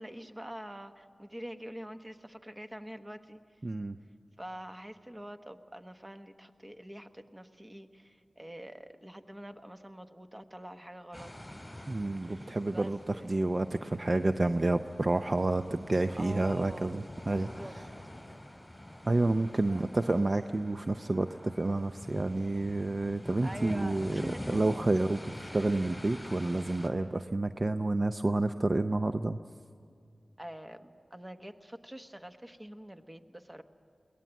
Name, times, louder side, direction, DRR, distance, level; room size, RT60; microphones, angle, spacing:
voice 1, 0.0-3.4 4.4-11.3 12.3-13.3 16.2-17.0 17.3-17.7 19.5-19.9 23.4-24.6 30.4-33.6, equal, 20° right, 7 dB, 1.2 m, -45 dB
voice 2, 3.6-4.0 11.9-13.0 13.2-17.5 19.1-29.4, right 2 dB, 45° right, 9 dB, 0.5 m, -29 dB
Felixstowe beach waves very close stones spray stereo, 11.1-26.9, left 1 dB, 10° left, 3.4 m, -46 dB
22.0 x 18.0 x 9.1 m, 2.2 s
cardioid pair, 50°, 0 cm